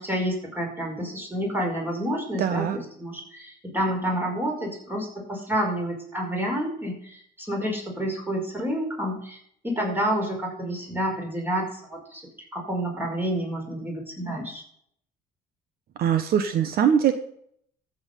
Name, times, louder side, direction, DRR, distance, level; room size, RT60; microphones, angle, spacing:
voice 1, 0.0-9.4 9.6-12.2 12.5-14.6, equal, 10° right, 0 dB, 5.2 m, -29 dB
voice 2, 2.4-2.8 16.0-17.1, right 8 dB, 65° right, 9 dB, 1.1 m, -22 dB
14.0 x 8.1 x 5.4 m, 0.66 s
cardioid pair, 110°, 17 cm